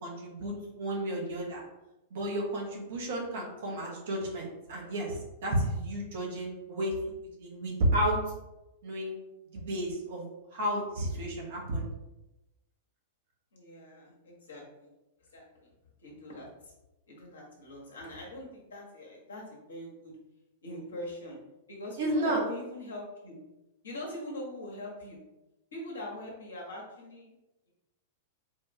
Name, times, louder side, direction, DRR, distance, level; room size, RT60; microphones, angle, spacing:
voice 1, 0.0-1.6 2.1-6.9 7.4-8.2 8.8-9.2 9.5-10.2 10.5-11.9 22.0-22.4, right 1 dB, 60° right, -1 dB, 1.1 m, -32 dB
voice 2, 13.5-14.9 15.2-15.7 16.0-16.7 17.1-20.2 20.6-21.4 21.7-23.4 23.8-25.2 25.7-27.3, left 1 dB, 70° left, -2 dB, 1.3 m, -42 dB
4.3 x 2.5 x 3.1 m, 0.98 s
figure-of-eight pair, 95°, 0 cm